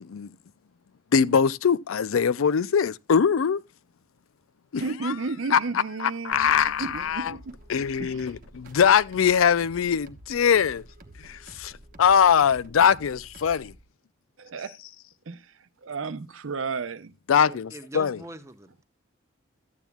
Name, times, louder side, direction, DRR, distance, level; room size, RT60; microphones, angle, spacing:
voice 1, 1.1-3.6 4.7-5.1 5.5-5.6 6.0-7.3 7.7-10.8 11.2-11.7 12.0-13.7 17.3-18.2, left 7 dB, 90° left, 0.4 m, -22 dB
voice 2, 4.8-7.5 8.0-8.2 14.4-14.8 15.3-15.4 15.8-17.1, right 4 dB, 80° right, 0.7 m, -33 dB
sound 1, 6.3-13.8, right 1 dB, 45° right, 1.0 m, -49 dB
voice 3, 17.5-18.8, right 1 dB, 15° right, 0.9 m, -43 dB
13.5 x 9.1 x 2.3 m
head